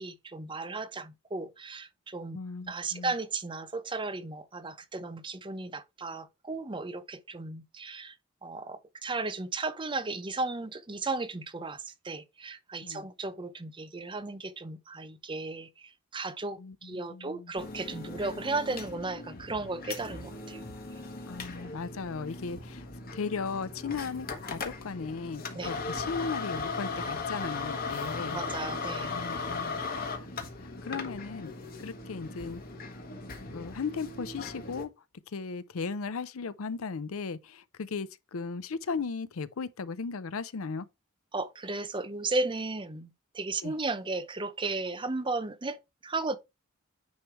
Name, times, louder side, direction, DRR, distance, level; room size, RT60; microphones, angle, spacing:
voice 1, 0.0-2.4 2.7-8.1 8.4-20.6 25.5-25.7 28.3-29.1 41.3-46.4, right 3 dB, 25° right, 0.7 m, -35 dB
voice 2, 2.3-3.1 12.8-13.1 16.6-17.5 21.3-22.9 23.1-28.4 29.1-30.3 30.6-31.5 31.8-32.6 33.5-34.9 35.3-40.9 43.6-43.7, left 5 dB, 75° left, 0.6 m, -36 dB
sound 1, 17.6-34.8, left 3 dB, 45° left, 1.4 m, -38 dB
9.5 x 3.2 x 4.5 m
head